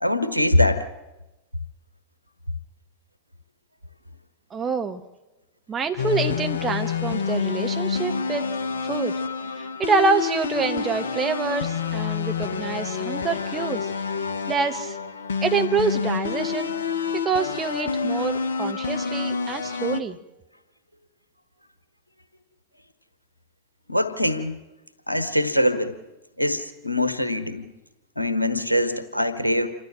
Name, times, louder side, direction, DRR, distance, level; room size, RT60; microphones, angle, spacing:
voice 1, 0.0-0.9 23.9-24.6 25.1-25.9 26.4-27.7 28.2-29.7, left 1 dB, 90° left, 11 dB, 1.3 m, -23 dB
voice 2, 4.5-5.0 5.7-8.5 8.8-9.1 9.6-13.9 14.5-15.0 15.4-16.8 17.1-20.2, right 5 dB, 20° right, 6 dB, 1.4 m, -26 dB
sound 1, 6.0-20.0, left 5 dB, 65° left, 0.9 m, -28 dB
27.5 x 12.5 x 7.6 m, 1.0 s
figure-of-eight pair, 90°, 0 cm